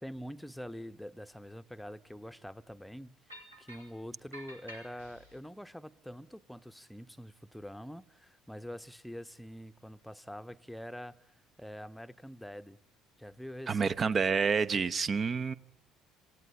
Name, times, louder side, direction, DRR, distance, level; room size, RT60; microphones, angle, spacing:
voice 1, 0.0-11.1 11.6-12.8 13.2-13.8, equal, 5° left, 1.0 m, -45 dB
sound 1, 3.3-4.0 4.3-5.4, right 1 dB, 85° right, 3.5 m, -50 dB
voice 2, 13.7-15.5, right 5 dB, 35° right, 0.9 m, -28 dB
27.5 x 17.0 x 9.8 m
figure-of-eight pair, 55°, 0 cm